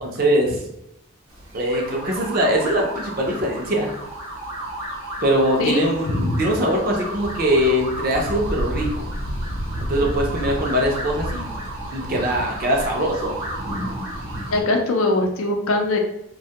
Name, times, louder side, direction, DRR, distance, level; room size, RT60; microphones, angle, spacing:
voice 1, 0.0-0.6 1.5-3.9 5.2-9.1 9.9-11.5 11.9-13.3, equal, 45° right, 0 dB, 0.5 m, -22 dB
sound 1, 1.3-14.6, right 1 dB, 85° right, 0.8 m, -31 dB
voice 2, 5.6-6.4 14.5-16.0, left 2 dB, 90° left, 3 dB, 0.5 m, -22 dB
2.2 x 2.1 x 2.8 m, 0.82 s
head